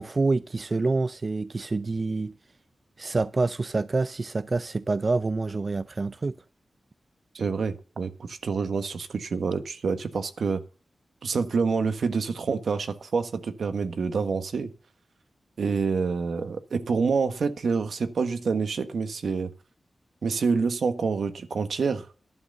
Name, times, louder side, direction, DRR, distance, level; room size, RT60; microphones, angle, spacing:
voice 1, 0.0-2.3 3.0-6.4, right 3 dB, 50° right, 0.5 m, -27 dB
voice 2, 7.3-10.6 11.2-14.7 15.6-19.5 20.2-22.1, right 5 dB, 80° right, 1.4 m, -27 dB
11.5 x 6.5 x 6.8 m
cardioid pair, 50°, 0 cm